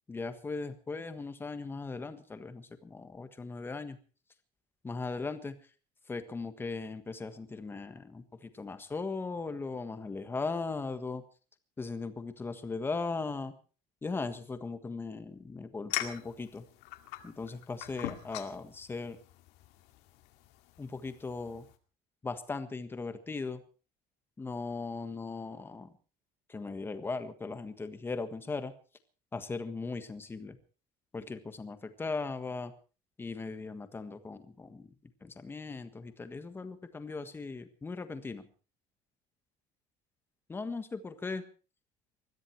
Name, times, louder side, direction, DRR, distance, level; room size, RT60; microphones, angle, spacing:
voice 1, 0.1-4.0 4.8-5.7 6.1-11.2 11.8-13.5 14.0-16.7 17.2-19.2 20.8-21.7 22.2-23.6 24.4-25.9 26.5-28.7 29.3-30.6 31.1-32.7 33.2-34.9 35.2-38.5 40.5-41.4, left 4 dB, 15° left, 9 dB, 1.5 m, -38 dB
sound 1, 15.9-21.8, left 15 dB, 80° left, 2.1 m, -43 dB
21.5 x 14.0 x 4.6 m, 0.37 s
cardioid pair, 170°, 17 cm